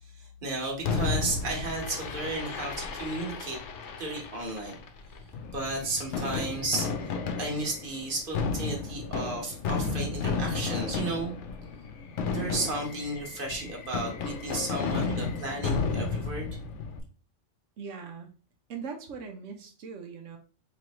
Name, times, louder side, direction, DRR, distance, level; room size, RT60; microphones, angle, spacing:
voice 1, 0.2-3.6 4.0-4.8 5.5-6.9 7.4-11.3 12.3-16.5, right 2 dB, 45° right, 0 dB, 1.4 m, -33 dB
Fireworks, 0.8-17.0, left 4 dB, 75° left, 1.0 m, -33 dB
voice 2, 17.8-18.3 18.7-20.4, right 5 dB, 90° right, 3 dB, 1.1 m, -40 dB
4.5 x 3.1 x 3.0 m, 0.39 s
omnidirectional pair, 1.2 m